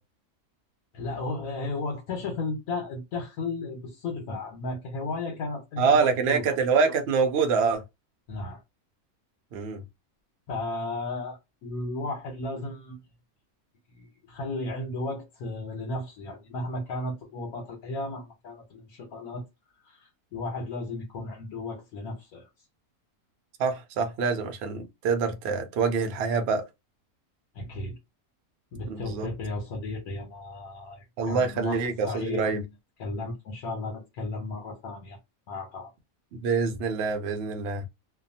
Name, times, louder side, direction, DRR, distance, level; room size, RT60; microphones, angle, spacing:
voice 1, 0.9-6.5 8.3-8.6 10.5-13.0 14.0-19.4 19.8-22.5 27.5-28.0 28.7-32.7 33.0-35.2 35.5-35.9, left 2 dB, 80° left, 1.3 m, -34 dB
voice 2, 5.8-7.8 9.5-9.8 23.6-26.6 28.9-29.3 31.2-32.6 36.3-37.8, right 5 dB, 65° right, 0.7 m, -25 dB
2.7 x 2.3 x 2.6 m
omnidirectional pair, 1.5 m